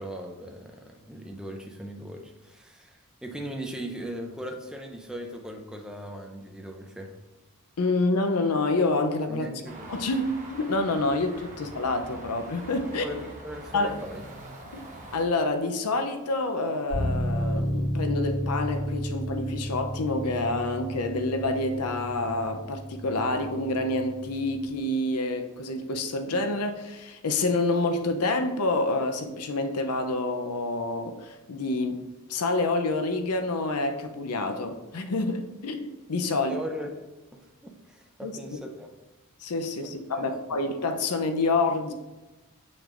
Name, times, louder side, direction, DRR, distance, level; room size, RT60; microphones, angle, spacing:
voice 1, 0.0-7.1 9.3-9.9 13.0-14.2 36.3-36.9 37.3-38.9 40.1-40.6, equal, 5° right, 2 dB, 0.6 m, -39 dB
voice 2, 7.8-9.5 9.9-13.1 13.7-14.0 14.7-14.8 15.1-32.0 32.3-36.6 38.2-38.4 39.4-41.9, left 2 dB, 85° left, 7 dB, 0.6 m, -27 dB
sound 1, 9.6-15.2, right 1 dB, 35° right, 1.0 m, -44 dB
sound 2, 16.9-24.6, equal, 65° right, 2.1 m, -32 dB
6.6 x 6.1 x 2.5 m, 1.1 s
head